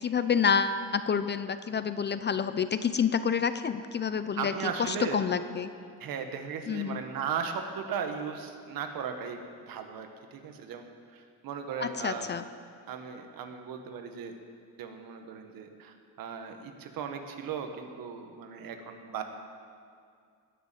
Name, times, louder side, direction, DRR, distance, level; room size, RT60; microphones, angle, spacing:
voice 1, 0.0-4.5 4.8-5.7 6.7-7.0 11.8-12.4, left 6 dB, 30° left, 12 dB, 0.5 m, -28 dB
voice 2, 4.3-5.2 6.0-10.8 11.1-12.3 12.8-14.4 14.8-19.2, right 6 dB, 65° right, 5 dB, 1.7 m, -37 dB
20.0 x 6.9 x 7.7 m, 2.2 s
cardioid pair, 115°, 37 cm